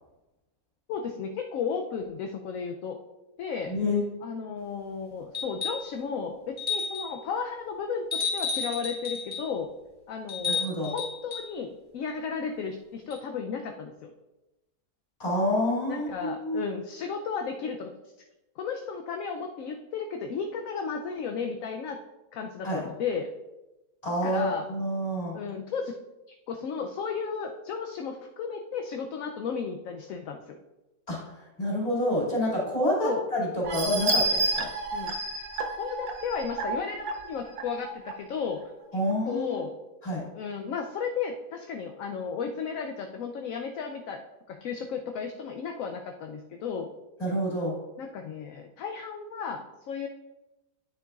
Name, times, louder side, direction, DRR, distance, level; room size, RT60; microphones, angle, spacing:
voice 1, 0.9-3.0 3.4-3.7 4.2-9.7 10.1-14.1 15.9-17.9 18.6-22.0 22.3-23.3 24.2-24.7 25.3-26.0 26.5-30.5 33.0-33.2 34.9-35.2 35.8-38.6 39.3-39.7 40.3-44.2 44.5-46.9 48.0-50.1, left 6 dB, 70° left, 3 dB, 0.9 m, -34 dB
voice 2, 3.7-4.0 10.5-10.9 15.2-16.6 22.6-22.8 24.0-25.4 31.1-34.7 38.9-39.6 40.0-40.2 47.2-47.7, left 1 dB, 25° left, -6 dB, 2.5 m, -28 dB
sound 1, 5.3-5.9 6.6-7.2 8.1-9.5 10.3-11.5 13.1-13.2, left 5 dB, 5° left, 2.6 m, -32 dB
sound 2, 33.6-38.1 38.6-38.7 39.1-39.2, right 2 dB, 70° right, 1.2 m, -30 dB
9.8 x 6.8 x 2.4 m, 1.0 s
omnidirectional pair, 1.7 m